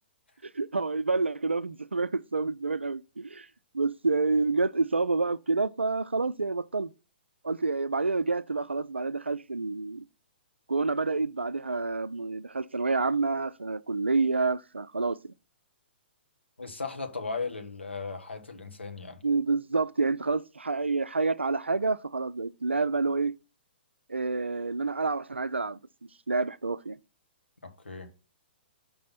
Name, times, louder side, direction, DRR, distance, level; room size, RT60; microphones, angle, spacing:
voice 1, 0.4-3.5 3.7-6.9 7.4-10.0 10.7-15.3 19.2-23.3 24.1-25.8 26.3-27.0, right 3 dB, 85° right, 0.4 m, -28 dB
voice 2, 16.6-19.2 27.8-28.1, left 4 dB, 85° left, 1.3 m, -36 dB
5.4 x 4.1 x 5.8 m
figure-of-eight pair, 120°, 6 cm